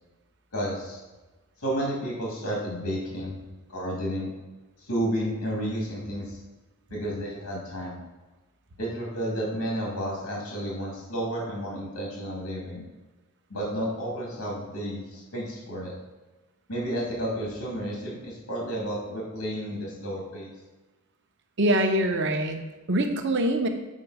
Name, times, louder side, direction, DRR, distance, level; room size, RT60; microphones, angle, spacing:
voice 1, 0.5-1.0 1.6-3.4 3.7-4.3 4.8-6.4 6.9-8.0 8.8-12.8 13.5-15.9 16.7-20.5, equal, 90° left, -4 dB, 2.4 m, -31 dB
voice 2, 21.6-23.7, right 1 dB, 50° right, 5 dB, 0.8 m, -24 dB
7.5 x 4.9 x 4.8 m, 1.2 s
head